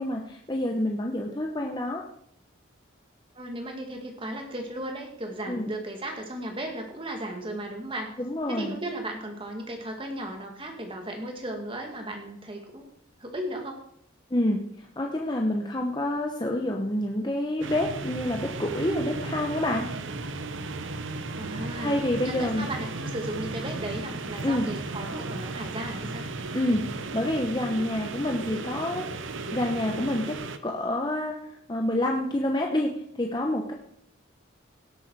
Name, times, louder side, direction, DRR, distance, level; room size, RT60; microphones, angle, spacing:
voice 1, 0.0-2.0 5.5-5.7 8.2-8.8 14.3-19.9 21.8-22.7 24.4-24.7 26.5-26.8 27.1-29.0 29.5-30.4 30.6-33.7, left 1 dB, 20° left, 1 dB, 0.9 m, -28 dB
voice 2, 3.3-8.1 8.5-12.9 13.2-13.8 21.4-22.0 22.2-26.3, right 1 dB, 25° right, 3 dB, 2.1 m, -35 dB
sound 1, 17.6-30.6, right 3 dB, 75° right, 0.9 m, -35 dB
17.5 x 7.9 x 4.7 m, 0.69 s
head